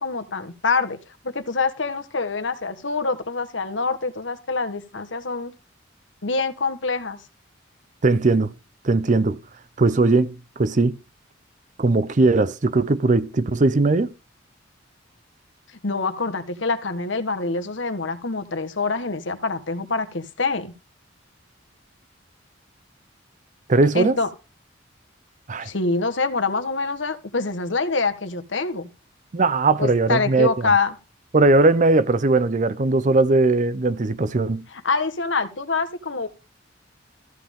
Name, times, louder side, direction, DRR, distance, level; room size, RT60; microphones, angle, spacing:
voice 1, 0.0-1.0 1.2-5.5 6.2-7.2 15.8-20.7 23.9-24.3 25.6-28.9 29.8-30.9 34.7-36.3, left 4 dB, 70° left, 1.3 m, -25 dB
voice 2, 8.0-8.5 8.8-9.4 9.8-11.0 11.8-14.1 23.7-24.2 25.5-25.7 29.3-30.5 31.3-34.7, right 3 dB, 40° right, 0.6 m, -19 dB
14.0 x 7.4 x 3.6 m
head